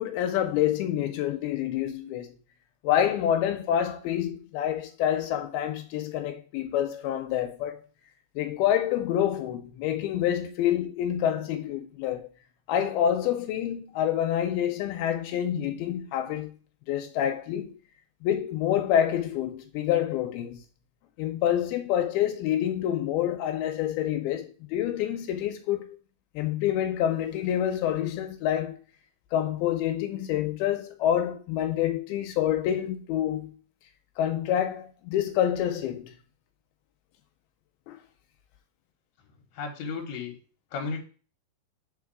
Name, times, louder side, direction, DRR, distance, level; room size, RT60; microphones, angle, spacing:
voice 1, 0.0-2.4 2.8-7.8 8.4-12.3 12.7-16.5 16.9-17.7 18.2-20.6 21.2-26.0 26.4-28.8 29.3-33.5 34.2-36.1 37.9-38.0, left 10 dB, 85° left, 2.5 m, -27 dB
voice 2, 39.6-40.3 40.7-41.0, left 4 dB, 60° left, 2.2 m, -33 dB
5.0 x 4.6 x 4.8 m
omnidirectional pair, 4.3 m